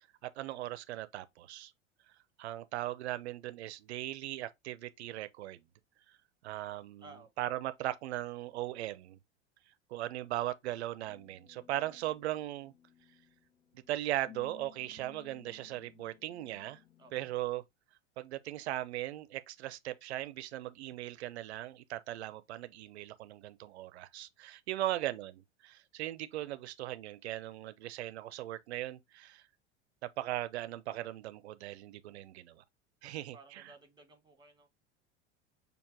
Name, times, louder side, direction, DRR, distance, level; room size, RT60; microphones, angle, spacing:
voice 1, 0.2-1.7 2.4-5.6 6.4-7.0 7.4-9.2 9.9-12.7 13.7-16.8 17.1-17.6 18.2-25.3 25.6-29.4 30.0-32.6 33.0-33.6, right 14 dB, 65° right, 0.6 m, -38 dB
voice 2, 7.0-7.4 17.0-17.1 24.8-25.0 33.0-34.7, right 2 dB, 10° right, 1.4 m, -56 dB
sound 1, 11.0-17.4, left 12 dB, 90° left, 1.4 m, -59 dB
6.5 x 2.8 x 2.7 m
figure-of-eight pair, 80°, 36 cm